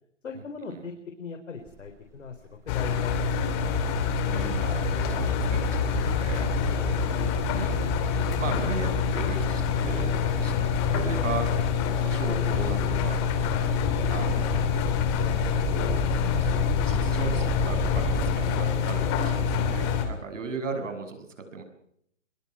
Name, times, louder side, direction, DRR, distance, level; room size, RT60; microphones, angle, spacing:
voice 1, 0.2-0.9 1.2-2.4 2.7-3.5 16.2-16.5 20.7-20.9, left 5 dB, 80° left, 4 dB, 4.0 m, -39 dB
sound 1, 1.6-1.9 2.2-18.4, right 2 dB, 10° right, 4.4 m, -37 dB
Engine, 2.7-20.0, left 6 dB, 20° left, 2.7 m, -26 dB
voice 2, 4.3-7.9 8.1-10.5 10.9-11.5 12.0-13.2 14.1-14.6 15.7-16.1 16.4-21.6, right 4 dB, 75° right, 8 dB, 6.8 m, -37 dB
23.5 x 22.0 x 6.0 m, 0.70 s
hypercardioid pair, 165°, 38 cm